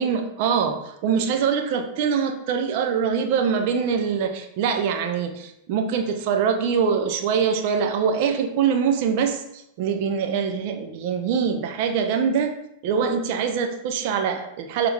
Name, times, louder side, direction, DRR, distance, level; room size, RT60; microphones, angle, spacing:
voice 1, 0.0-12.6 12.8-14.9, right 6 dB, 45° right, 5 dB, 1.1 m, -23 dB
11.5 x 3.9 x 3.5 m, 0.80 s
figure-of-eight pair, 90°, 0 cm